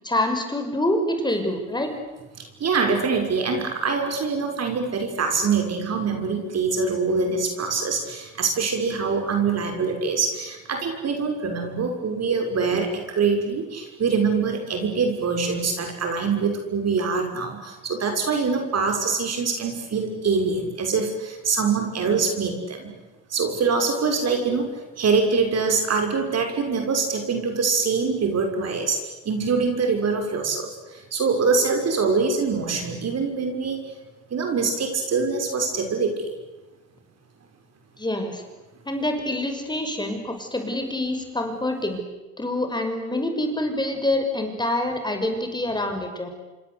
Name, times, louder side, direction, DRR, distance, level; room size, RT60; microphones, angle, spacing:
voice 1, 0.0-1.9 38.0-38.4 38.9-42.0 42.4-46.3, left 1 dB, 15° left, 5 dB, 5.9 m, -26 dB
voice 2, 2.4-22.9 23.3-33.8 34.3-36.1, right 4 dB, 55° right, 4 dB, 6.3 m, -24 dB
28.0 x 25.5 x 8.3 m, 1.1 s
cardioid pair, 90°, 30 cm